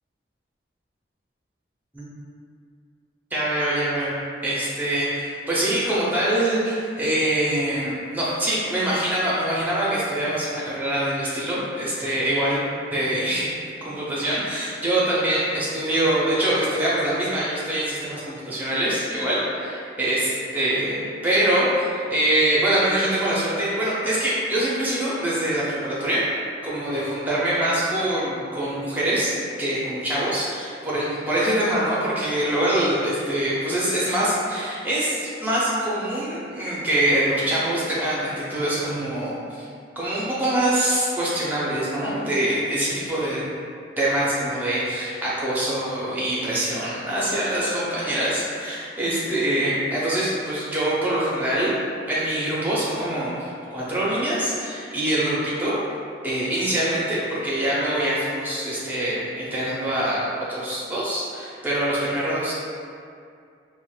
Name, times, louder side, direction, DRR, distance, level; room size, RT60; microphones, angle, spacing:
voice 1, 3.3-12.6 12.9-13.5 13.8-26.3 26.6-39.7 40.0-43.4 44.0-51.7 52.1-55.8 56.2-62.5, right 1 dB, 10° right, -8 dB, 0.5 m, -24 dB
3.6 x 2.1 x 2.3 m, 2.3 s
head